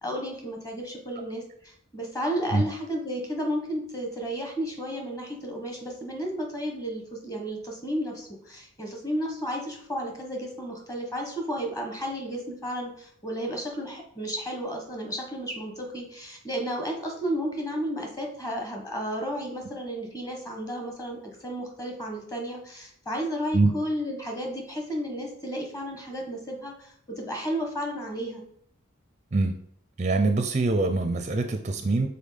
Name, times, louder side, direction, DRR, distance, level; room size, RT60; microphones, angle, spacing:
voice 1, 0.0-28.4, equal, 15° left, 2 dB, 1.3 m, -33 dB
voice 2, 30.0-32.1, right 3 dB, 35° right, 6 dB, 0.5 m, -24 dB
5.5 x 4.3 x 5.0 m, 0.63 s
head